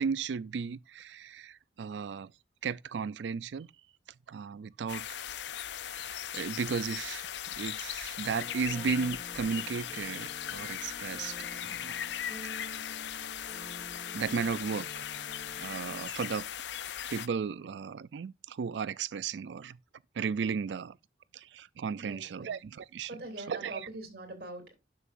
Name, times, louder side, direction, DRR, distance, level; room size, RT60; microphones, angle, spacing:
voice 1, 0.0-2.3 2.6-3.7 4.3-5.1 5.9-7.2 7.6-12.1 12.5-12.8 14.1-15.0 15.6-16.5 17.1-19.8 20.2-21.0 21.3-23.9, right 6 dB, 90° right, 0.4 m, -35 dB
sound 1, 4.9-17.3, left 10 dB, 80° left, 0.5 m, -39 dB
sound 2, 8.3-16.0, equal, 15° left, 2.9 m, -49 dB
voice 2, 22.0-22.5 23.1-24.7, right 2 dB, 60° right, 3.1 m, -43 dB
12.0 x 6.8 x 2.6 m
head